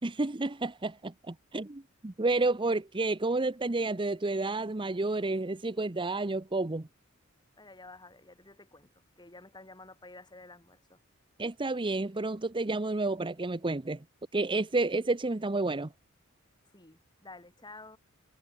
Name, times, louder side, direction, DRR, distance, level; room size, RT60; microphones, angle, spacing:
voice 1, 0.0-6.9 11.4-14.0 14.3-15.9, right 2 dB, 25° right, 0.8 m, -30 dB
voice 2, 7.6-11.0 16.7-18.0, left 3 dB, 20° left, 7.9 m, -51 dB
head